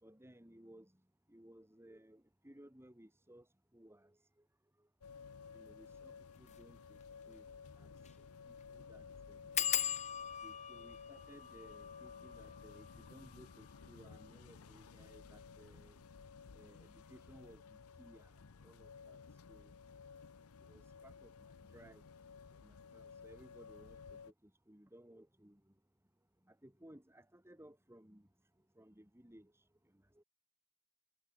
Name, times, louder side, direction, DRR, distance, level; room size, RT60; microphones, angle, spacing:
voice 1, 0.0-0.9 1.3-3.5 3.7-4.2 5.5-7.0 7.3-7.5 7.8-7.9 8.7-9.4 10.4-16.0 16.5-18.3 18.6-19.2 19.5-19.7 20.6-22.0 22.6-25.6 26.5-28.3 28.8-29.6 30.1-30.2, right 1 dB, 10° right, 2.7 m, -60 dB
sound 1, 5.0-24.3, left 5 dB, 70° left, 0.6 m, -55 dB
sound 2, 6.4-6.6 7.0-7.1 7.3-7.4 8.0-8.2 8.5-8.6 9.6-14.8 15.5-16.0 16.3-16.7 16.9-17.0, left 10 dB, 30° left, 1.0 m, -41 dB
head